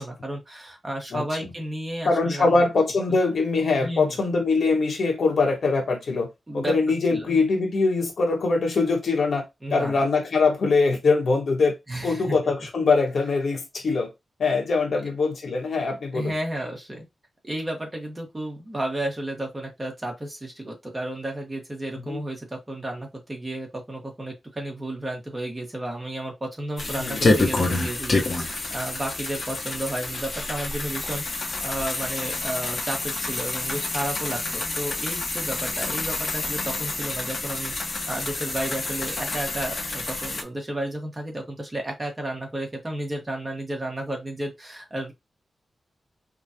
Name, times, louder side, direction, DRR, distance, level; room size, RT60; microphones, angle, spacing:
voice 1, 0.0-2.6 3.1-3.2 3.8-4.1 6.5-6.7 7.1-7.4 9.6-10.0 11.9-12.4 14.9-15.0 16.1-17.1 17.4-45.1, right 1 dB, 20° right, 1.3 m, -32 dB
voice 2, 2.0-6.3 6.5-9.4 9.7-11.7 12.0-14.1 14.4-16.3 22.1-22.2 27.0-27.3, left 3 dB, 65° left, 1.2 m, -22 dB
sound 1, 26.8-40.4, left 2 dB, 50° left, 1.0 m, -28 dB
5.0 x 2.4 x 2.8 m
wide cardioid pair, 110°, 0 cm